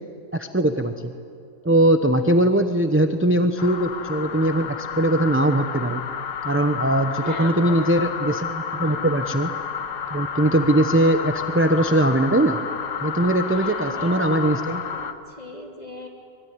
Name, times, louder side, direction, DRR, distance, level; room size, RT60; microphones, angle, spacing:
voice 1, 0.3-1.1 1.6-6.0 6.4-9.5 10.1-12.6 13.0-14.8, right 1 dB, 10° right, 7 dB, 0.6 m, -21 dB
sound 1, 3.6-15.1, left 7 dB, 80° left, 1.7 m, -31 dB
voice 2, 7.2-7.9 8.8-9.1 13.5-16.1, equal, 25° left, 1 dB, 3.3 m, -37 dB
24.5 x 22.5 x 9.6 m, 2.3 s
omnidirectional pair, 1.7 m